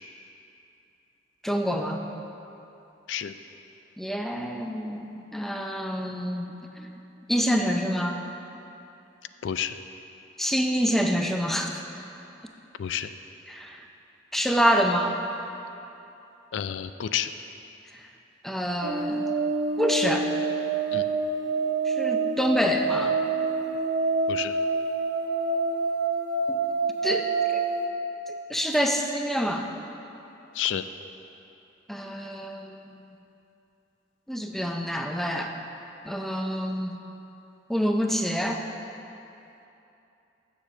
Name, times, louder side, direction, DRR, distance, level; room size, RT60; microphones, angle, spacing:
voice 1, 1.4-2.0 4.0-6.5 6.8-6.9 7.3-8.2 10.4-11.8 13.5-13.8 14.3-15.2 18.4-19.2 19.8-20.3 21.9-23.1 26.5-26.6 27.0-27.6 28.5-29.7 31.9-32.8 34.3-35.5 36.1-37.0 37.7-38.6, equal, ahead, 3 dB, 0.5 m, -27 dB
voice 2, 9.4-9.7 12.8-13.1 16.5-17.3 20.9-21.1 24.3-24.6 30.5-30.8, left 9 dB, 75° left, 11 dB, 0.3 m, -30 dB
sound 1, 18.8-27.9, right 3 dB, 85° right, 0.7 m, -27 dB
7.0 x 6.9 x 7.0 m, 2.9 s
head